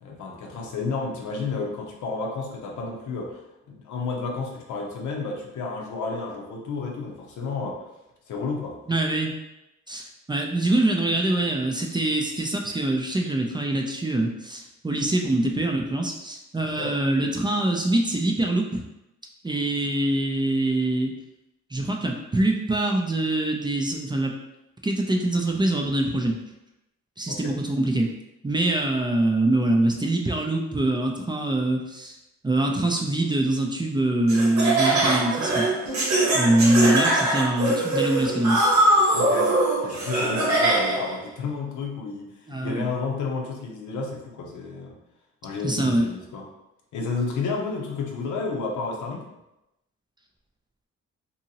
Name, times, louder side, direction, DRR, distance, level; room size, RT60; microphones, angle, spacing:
voice 1, 0.0-3.4 3.7-7.8 8.3-8.8 16.6-17.0 27.3-27.5 39.1-39.6 39.8-45.0 45.4-46.4 46.9-49.3, left 4 dB, 85° left, 0 dB, 0.7 m, -31 dB
voice 2, 8.9-9.3 9.9-18.8 19.4-21.1 21.7-24.3 24.8-26.4 27.2-28.1 28.4-32.2 32.4-35.7 36.3-38.6 42.5-42.9 45.6-46.1, right 1 dB, 15° right, 1 dB, 0.4 m, -24 dB
Laughter, 34.3-41.1, right 2 dB, 65° right, 1.0 m, -22 dB
2.8 x 2.7 x 2.7 m, 0.92 s
cardioid pair, 90°, 29 cm